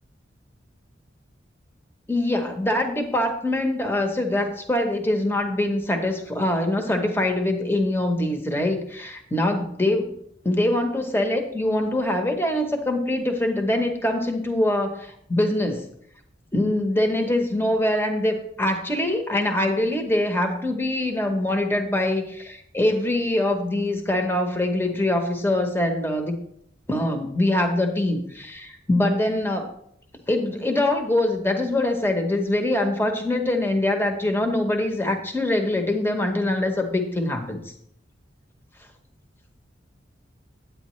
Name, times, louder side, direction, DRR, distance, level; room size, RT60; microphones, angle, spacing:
voice 1, 2.1-10.1 10.4-15.9 16.5-26.3 26.9-29.7 30.3-37.7, left 1 dB, 10° left, 4 dB, 0.8 m, -23 dB
9.2 x 9.1 x 3.1 m, 0.71 s
head